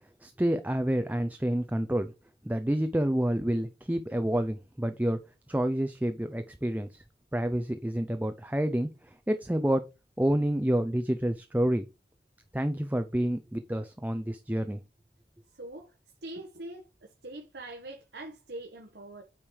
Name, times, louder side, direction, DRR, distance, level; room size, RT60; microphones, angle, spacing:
voice 1, 0.2-2.1 2.4-5.2 5.5-7.0 7.3-9.8 10.2-11.8 12.5-14.8, right 1 dB, 10° right, 0.5 m, -28 dB
voice 2, 15.5-15.9 16.2-19.2, right 2 dB, 80° right, 1.3 m, -43 dB
8.8 x 5.1 x 4.7 m
head